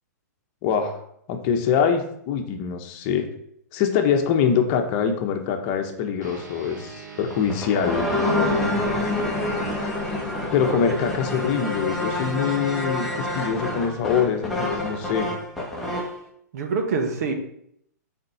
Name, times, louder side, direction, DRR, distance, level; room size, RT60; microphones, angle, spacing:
voice 1, 0.6-1.0 1.3-3.3 3.7-8.1 10.5-15.3, left 7 dB, 40° left, 5 dB, 1.1 m, -24 dB
sound 1, 6.2-15.9, right 5 dB, 80° right, 1.7 m, -41 dB
sound 2, 7.3-16.2, left 2 dB, ahead, 1.6 m, -27 dB
voice 2, 8.2-9.0 16.5-17.3, right 4 dB, 60° right, 4 dB, 1.5 m, -27 dB
6.5 x 4.5 x 5.6 m, 0.72 s
hypercardioid pair, 130°, 9 cm